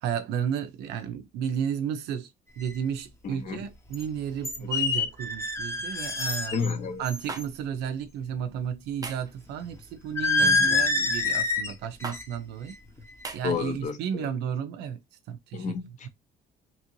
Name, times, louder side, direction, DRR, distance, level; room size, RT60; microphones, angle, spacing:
voice 1, 0.0-6.6 7.0-12.8 13.3-15.0 15.3-15.8, right 8 dB, 85° right, 0.5 m, -33 dB
sound 1, 2.6-2.7 3.9-4.0 4.4-6.7 7.0-7.4 10.2-11.7 12.0-12.4 12.7-13.0, left 3 dB, 15° left, 0.7 m, -26 dB
voice 2, 3.2-3.6 4.6-4.7 6.5-7.0 10.4-10.7 13.4-14.3 15.5-16.1, left 5 dB, 45° left, 0.7 m, -31 dB
sound 2, 7.3-7.4 9.0-9.3 10.6-10.9 12.0-12.2 13.2-13.4, right 4 dB, 20° right, 0.6 m, -37 dB
3.0 x 2.5 x 2.9 m
cardioid pair, 110°, 17 cm